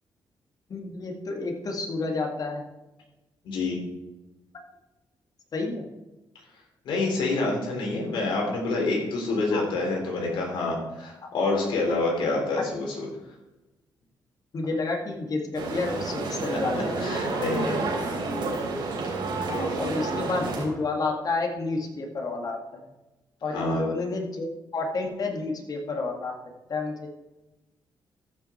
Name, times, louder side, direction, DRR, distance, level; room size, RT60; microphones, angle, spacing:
voice 1, 0.7-2.6 5.5-5.9 9.5-9.6 14.5-17.0 19.4-22.6 23.4-26.4 26.7-27.1, left 3 dB, 50° left, 2 dB, 2.2 m, -30 dB
voice 2, 3.4-3.8 6.9-13.1 16.3-17.8 23.5-23.8, left 2 dB, 85° left, -1 dB, 3.6 m, -27 dB
sound 1, 15.6-20.7, right 3 dB, 85° right, 3.4 m, -30 dB
14.5 x 6.3 x 4.5 m, 1.0 s
cardioid pair, 85°, 8 cm